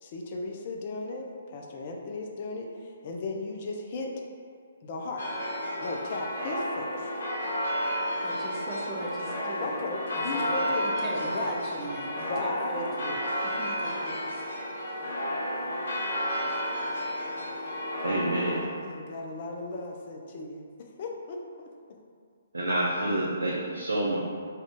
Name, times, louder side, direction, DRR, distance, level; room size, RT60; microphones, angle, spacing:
voice 1, 0.0-4.1 4.8-5.2 5.8-6.9 9.6-10.9 11.3-11.5 12.3-12.9 18.5-22.0 23.1-23.5, left 3 dB, 40° left, 1 dB, 0.4 m, -36 dB
sound 1, 5.2-18.6, equal, 60° left, 0.7 m, -32 dB
voice 2, 8.2-9.8 10.1-14.3, right 2 dB, 15° right, -5 dB, 0.5 m, -39 dB
voice 3, 18.0-18.6 22.5-24.2, right 1 dB, 75° right, -5 dB, 0.4 m, -28 dB
2.7 x 2.4 x 3.4 m, 2.2 s
figure-of-eight pair, 130°, 0 cm